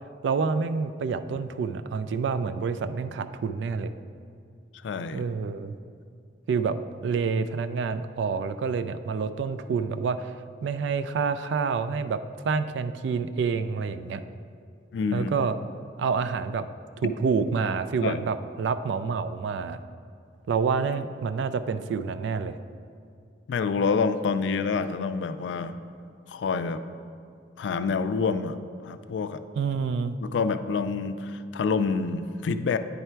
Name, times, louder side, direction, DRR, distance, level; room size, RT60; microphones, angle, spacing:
voice 1, 0.2-3.9 5.1-5.8 6.5-10.3 10.6-12.2 12.4-14.2 15.1-15.5 16.0-16.6 17.0-19.8 20.5-22.6 29.6-30.2, right 5 dB, 80° right, 11 dB, 0.3 m, -28 dB
voice 2, 4.8-5.2 14.9-15.3 17.0-17.1 18.0-18.2 23.5-25.8 26.3-26.8 27.6-28.6 28.8-29.4 30.2-32.8, left 5 dB, 80° left, 11 dB, 0.3 m, -27 dB
9.0 x 3.3 x 4.5 m, 2.3 s
head